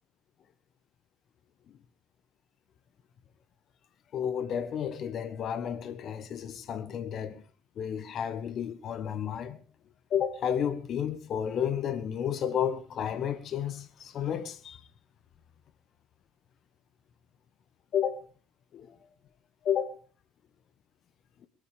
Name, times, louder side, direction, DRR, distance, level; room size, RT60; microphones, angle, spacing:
voice 1, 4.1-7.4 7.8-9.6 10.1-14.8 17.9-18.3 18.7-18.9 19.6-20.0, left 8 dB, 45° left, 1.4 m, -32 dB
21.5 x 10.5 x 4.9 m
hypercardioid pair, 65°, 0 cm